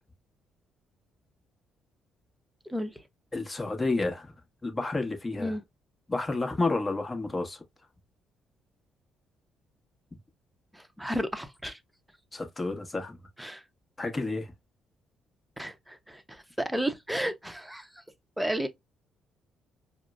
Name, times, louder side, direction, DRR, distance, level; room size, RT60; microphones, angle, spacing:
voice 1, 2.7-3.0 5.3-5.6 10.7-11.8 13.4-13.6 15.6-18.0 18.4-18.7, equal, 5° right, 0.8 m, -33 dB
voice 2, 3.3-4.3 4.6-5.5 6.1-7.6 12.3-13.2 14.0-14.5, left 3 dB, 25° left, 1.1 m, -30 dB
4.9 x 2.1 x 2.3 m
hypercardioid pair, 45°, 0 cm